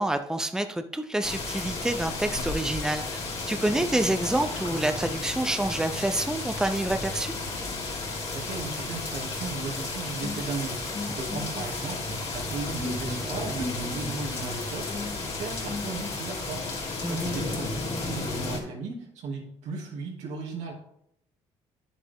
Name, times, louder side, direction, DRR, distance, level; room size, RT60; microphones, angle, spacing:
voice 1, 0.0-3.2 3.5-7.3 11.3-11.4 17.0-17.3, right 1 dB, 5° right, 8 dB, 0.7 m, -27 dB
sound 1, 1.2-18.6, left 3 dB, 60° left, 3.0 m, -33 dB
voice 2, 8.3-20.7, right 4 dB, 80° right, -1 dB, 2.7 m, -36 dB
sound 2, 10.2-17.3, left 2 dB, 40° left, 2.7 m, -40 dB
10.0 x 7.0 x 3.7 m, 0.76 s
cardioid pair, 85°, 12 cm